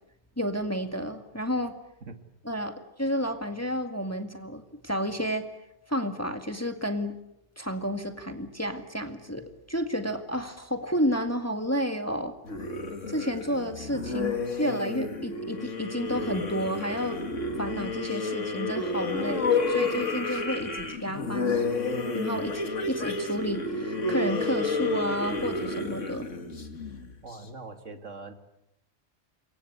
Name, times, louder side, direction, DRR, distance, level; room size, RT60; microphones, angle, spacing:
voice 1, 0.4-1.8 2.4-5.5 5.9-7.2 7.6-12.3 13.1-17.2 17.6-21.6 22.1-26.3, equal, 10° left, 7 dB, 1.9 m, -31 dB
sound 1, 12.4-27.3, left 3 dB, 65° left, 2.5 m, -30 dB
voice 2, 27.2-28.3, right 3 dB, 65° right, 7 dB, 2.6 m, -42 dB
27.5 x 24.0 x 8.2 m, 0.81 s
omnidirectional pair, 1.4 m